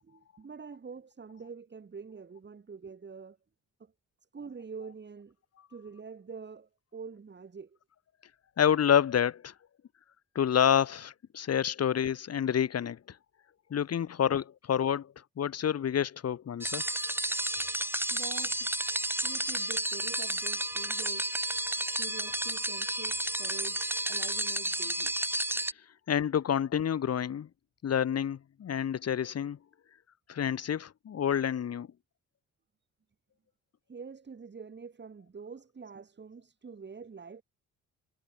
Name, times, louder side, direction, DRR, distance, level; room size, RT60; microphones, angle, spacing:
voice 1, 0.0-3.4 3.8-3.9 4.3-5.3 5.7-7.8 18.1-18.8 19.2-21.4 22.0-25.1 33.9-37.4, right 5 dB, 35° right, 7.1 m, -46 dB
voice 2, 8.6-9.5 10.3-13.0 13.7-15.1 15.4-16.8 26.1-27.5 27.8-29.6 30.3-31.9, left 9 dB, 55° left, 3.3 m, -28 dB
sound 1, 16.6-25.7, right 1 dB, 5° right, 3.9 m, -32 dB
cardioid pair, 90°, 30 cm